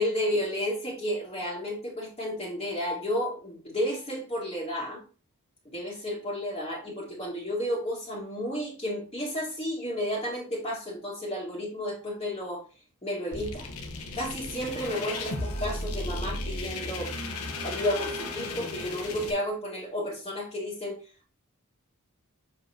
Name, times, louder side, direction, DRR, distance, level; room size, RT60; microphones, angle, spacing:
voice 1, 0.0-5.0 5.6-12.6 13.0-13.7 14.1-17.1 17.6-21.0, equal, 25° left, -8 dB, 2.2 m, -32 dB
sound 1, 13.3-19.3, left 2 dB, 70° left, 1.3 m, -34 dB
7.3 x 5.1 x 2.9 m, 0.35 s
head